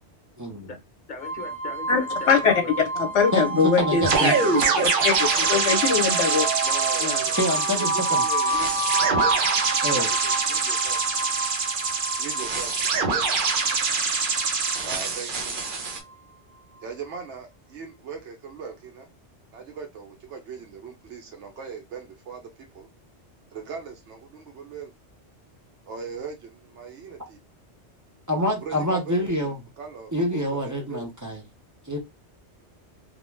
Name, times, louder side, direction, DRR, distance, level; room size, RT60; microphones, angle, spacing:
voice 1, 0.4-0.7 3.3-4.3 7.4-8.2 9.8-10.1 28.3-29.6 30.1-31.4 31.9-32.0, equal, 25° right, 0.4 m, -26 dB
voice 2, 1.1-2.9 4.2-4.9, left 4 dB, 45° left, 1.0 m, -39 dB
sound 1, 1.2-16.1, right 3 dB, 20° left, 0.9 m, -29 dB
voice 3, 3.0-4.3 5.0-6.5 7.0-7.2, left 5 dB, 75° left, 1.0 m, -22 dB
sound 2, 4.0-16.0, right 4 dB, 55° right, 0.7 m, -25 dB
voice 4, 4.4-4.9 5.3-5.5 6.6-9.3 9.8-11.0 12.2-12.8 14.8-15.6 16.8-19.1 19.5-22.9 23.5-24.9 25.9-27.4 28.6-31.1, right 5 dB, 80° right, 1.0 m, -39 dB
2.4 x 2.2 x 3.1 m
omnidirectional pair, 1.2 m